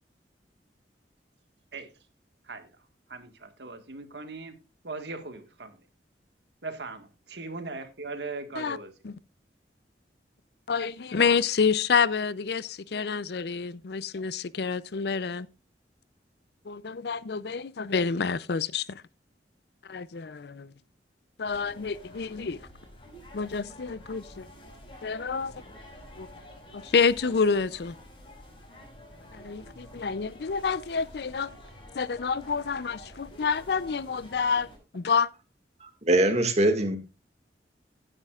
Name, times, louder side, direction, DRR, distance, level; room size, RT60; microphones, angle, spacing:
voice 1, 3.1-4.6 4.8-5.7 6.6-8.9, right 3 dB, 75° right, 1.7 m, -39 dB
voice 2, 10.7-15.5 16.7-19.0 19.9-20.7 21.4-22.6 23.3-24.5 25.0-25.5 26.2-26.3 26.7-27.9 29.3-31.5 31.9-34.7 34.9-35.3, left 5 dB, 65° left, 0.5 m, -28 dB
sound 1, 21.4-34.8, equal, 30° left, 5.1 m, -49 dB
voice 3, 35.8-37.0, right 1 dB, 40° right, 1.9 m, -23 dB
15.5 x 9.8 x 2.4 m
head